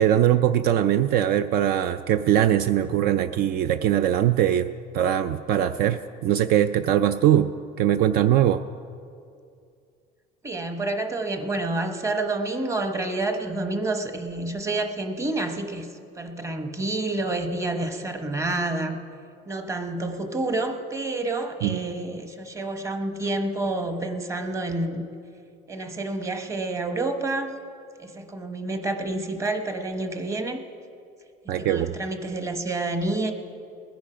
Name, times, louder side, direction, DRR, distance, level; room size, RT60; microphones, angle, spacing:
voice 1, 0.0-4.7 4.9-8.6 21.6-21.8 31.5-31.9, right 11 dB, 60° right, 10 dB, 0.4 m, -21 dB
voice 2, 10.4-18.9 19.5-25.1 25.7-27.6 28.0-30.6 31.4-33.3, right 2 dB, 15° right, 6 dB, 1.0 m, -29 dB
19.5 x 10.5 x 5.1 m, 2.4 s
cardioid pair, 140°, 18 cm